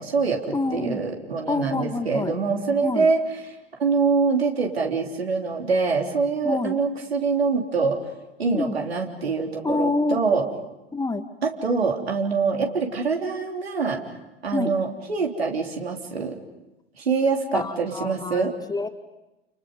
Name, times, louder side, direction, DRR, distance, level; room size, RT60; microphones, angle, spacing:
voice 1, 0.0-3.5 3.8-8.0 8.4-10.5 11.4-14.0 14.4-16.4 17.0-18.6, right 4 dB, 75° right, 2 dB, 3.6 m, -24 dB
voice 2, 0.5-1.0 1.5-2.4 2.8-3.1 6.4-6.8 8.5-8.8 9.6-10.2 10.9-11.3 14.5-14.7 17.5-18.9, left 3 dB, 10° left, 8 dB, 1.8 m, -27 dB
30.0 x 29.5 x 5.4 m, 1.0 s
figure-of-eight pair, 80°, 31 cm